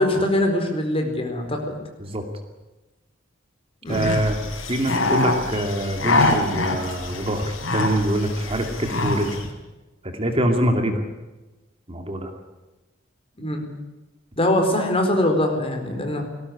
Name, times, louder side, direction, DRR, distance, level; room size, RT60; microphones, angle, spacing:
voice 1, 0.0-1.8 3.8-4.1 13.4-13.6 14.4-16.2, left 1 dB, 30° left, 4 dB, 4.4 m, -22 dB
sound 1, 3.9-9.5, left 2 dB, 80° left, 4.5 m, -25 dB
voice 2, 3.9-4.4 4.7-9.3 10.0-11.0 11.9-12.3, right 1 dB, 30° right, 5 dB, 2.5 m, -24 dB
19.0 x 17.5 x 9.8 m, 1.1 s
head